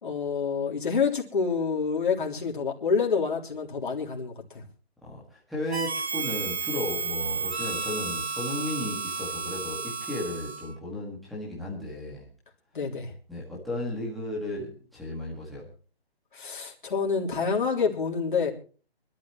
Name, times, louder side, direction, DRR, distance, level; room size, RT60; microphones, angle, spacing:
voice 1, 0.0-4.6 12.7-13.1 16.3-18.5, left 5 dB, 50° left, 3.6 m, -27 dB
voice 2, 5.0-12.3 13.3-15.6, left 1 dB, ahead, 1.8 m, -34 dB
Harmonica, 5.7-10.8, right 4 dB, 90° right, 1.9 m, -32 dB
25.5 x 12.5 x 3.0 m
hypercardioid pair, 175°, 31 cm